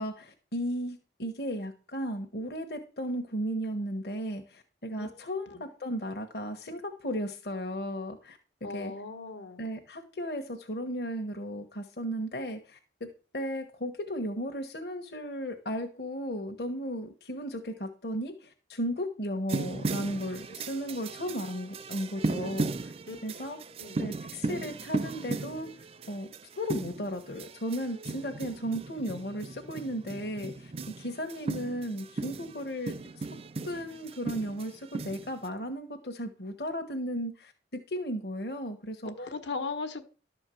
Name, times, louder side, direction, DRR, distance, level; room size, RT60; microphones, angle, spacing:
voice 1, 0.0-8.4 8.7-8.9 9.6-13.1 13.3-22.9 23.2-23.6 24.0-25.7 26.1-26.3 26.6-30.7 31.0-33.3 33.6-37.5 37.9-39.3, equal, 60° left, 3 dB, 1.2 m, -35 dB
voice 2, 8.6-9.7 23.1-23.5 23.8-24.1 39.0-40.1, left 4 dB, 75° left, 8 dB, 1.4 m, -38 dB
sound 1, 19.5-35.5, right 3 dB, 30° right, 0.4 m, -37 dB
12.0 x 4.5 x 7.6 m, 0.36 s
head